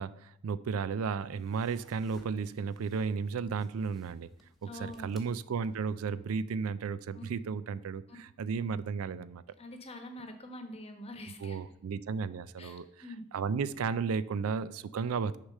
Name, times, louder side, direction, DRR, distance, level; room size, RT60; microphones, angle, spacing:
voice 1, 0.0-4.3 4.6-9.4 11.4-12.9 13.3-15.4, right 5 dB, 75° right, 0.4 m, -34 dB
sound 1, 1.2-6.0, equal, ahead, 1.1 m, -61 dB
voice 2, 4.6-5.1 7.1-7.2 9.6-11.6 12.6-13.2, left 1 dB, 30° left, 1.0 m, -45 dB
6.6 x 4.8 x 6.5 m
head